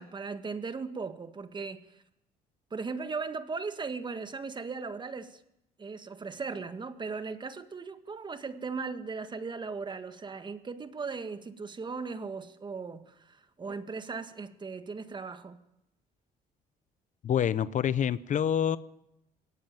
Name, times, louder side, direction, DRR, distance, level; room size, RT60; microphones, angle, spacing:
voice 1, 0.0-2.0 2.7-5.4 5.8-15.6, right 4 dB, 25° right, 1.8 m, -38 dB
voice 2, 17.2-18.8, left 9 dB, 45° left, 0.8 m, -27 dB
21.5 x 18.0 x 9.3 m
cardioid pair, 110°, 17 cm